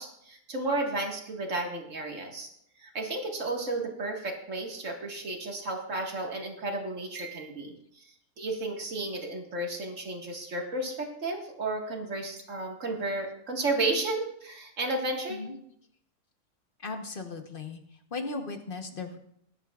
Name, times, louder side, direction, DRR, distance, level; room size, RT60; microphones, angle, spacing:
voice 1, 0.0-2.5 2.8-15.4, right 2 dB, 60° right, 1 dB, 2.2 m, -33 dB
voice 2, 16.8-17.8 18.1-19.2, left 3 dB, 40° left, 5 dB, 1.2 m, -37 dB
19.5 x 10.5 x 2.4 m, 0.70 s
omnidirectional pair, 1.5 m